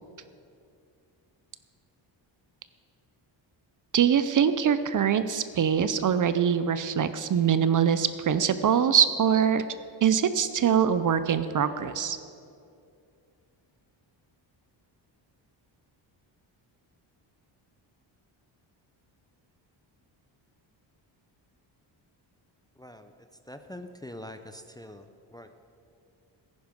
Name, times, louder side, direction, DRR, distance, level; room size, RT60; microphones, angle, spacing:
voice 1, 3.9-9.6 10.0-12.2, right 8 dB, 40° right, 12 dB, 0.6 m, -23 dB
voice 2, 22.8-23.1 23.5-25.0 25.3-25.5, left 1 dB, 10° left, 7 dB, 0.5 m, -43 dB
14.5 x 10.5 x 5.2 m, 2.5 s
cardioid pair, 110°, 46 cm